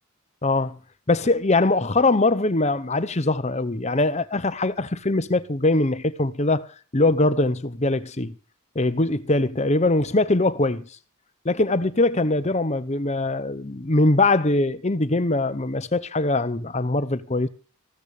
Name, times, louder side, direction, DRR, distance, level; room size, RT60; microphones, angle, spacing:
voice 1, 0.4-0.8 1.1-6.7 6.9-8.3 8.7-10.9 11.4-17.5, left 2 dB, 30° left, 0.9 m, -22 dB
15.5 x 13.5 x 4.9 m
head